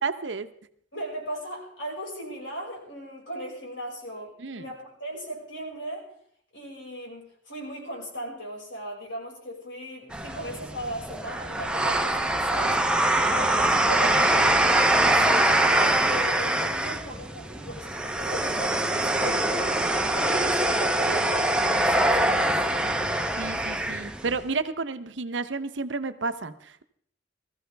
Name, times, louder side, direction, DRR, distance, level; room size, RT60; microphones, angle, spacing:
voice 1, 0.0-0.5 4.4-4.7 21.7-22.8 23.4-26.8, right 4 dB, 75° right, 10 dB, 0.9 m, -32 dB
voice 2, 0.9-6.1 6.5-12.8 13.3-14.6 14.9-22.7, right 1 dB, 85° left, -2 dB, 5.6 m, -37 dB
sound 1, 10.1-24.4, right 1 dB, 5° right, 0.8 m, -24 dB
20.0 x 14.5 x 3.4 m, 0.64 s
head